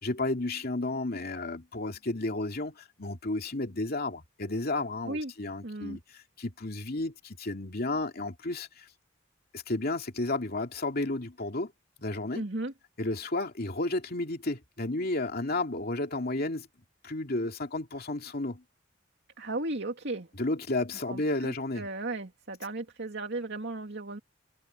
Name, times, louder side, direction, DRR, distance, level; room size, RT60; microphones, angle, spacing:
voice 1, 0.0-8.9 9.5-11.7 12.0-12.4 13.0-16.7 17.0-18.6 20.4-21.9, left 2 dB, 55° left, 2.6 m, -32 dB
voice 2, 5.6-6.0 12.3-12.7 19.4-20.3 21.1-24.2, right 2 dB, 60° right, 2.5 m, -35 dB
head